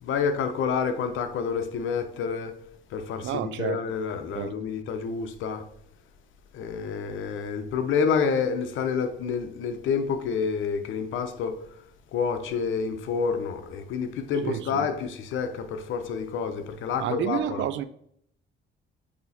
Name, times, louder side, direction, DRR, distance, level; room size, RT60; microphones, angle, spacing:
voice 1, 0.0-2.5 2.9-5.6 6.5-11.5 12.1-17.7, left 6 dB, 80° left, 0.8 m, -28 dB
voice 2, 3.2-3.8 4.3-4.5 14.4-14.9 17.0-17.8, right 10 dB, 70° right, 0.5 m, -30 dB
8.4 x 2.9 x 4.1 m
cardioid pair, 90°, 20 cm